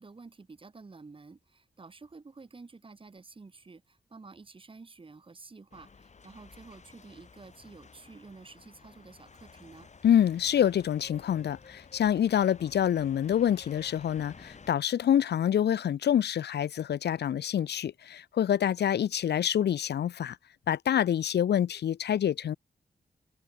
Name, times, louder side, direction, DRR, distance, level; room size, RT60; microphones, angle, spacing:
voice 1, 0.0-9.9, right 4 dB, 30° right, 2.1 m, -50 dB
sound 1, 5.7-14.7, left 5 dB, 45° left, 3.0 m, -53 dB
voice 2, 10.0-20.4 20.7-22.6, left 9 dB, 85° left, 0.5 m, -26 dB
open air
wide cardioid pair, 165°, 17 cm